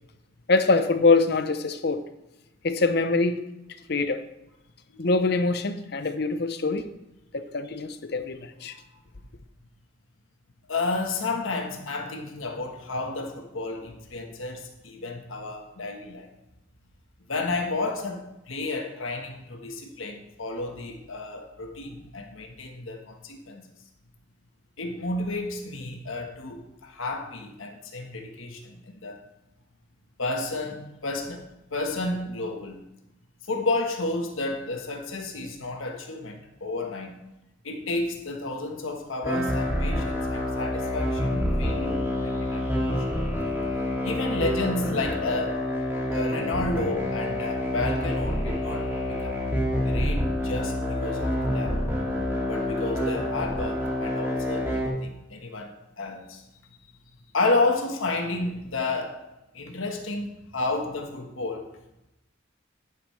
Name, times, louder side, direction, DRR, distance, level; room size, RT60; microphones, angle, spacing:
voice 1, 0.5-2.0 2.6-3.4 3.9-4.2 5.0-6.9 7.3-8.7, left 3 dB, 55° left, 10 dB, 0.7 m, -24 dB
voice 2, 10.7-16.3 17.3-23.6 24.8-29.2 30.2-32.8 33.5-37.1 37.6-43.0 44.0-45.7 46.1-49.4 49.9-51.8 52.5-56.4 57.3-59.2 59.5-61.8, left 2 dB, 85° left, 3 dB, 1.3 m, -31 dB
sound 1, 39.2-54.9, left 1 dB, 10° right, 2.2 m, -27 dB
10.5 x 9.1 x 3.2 m, 0.90 s
head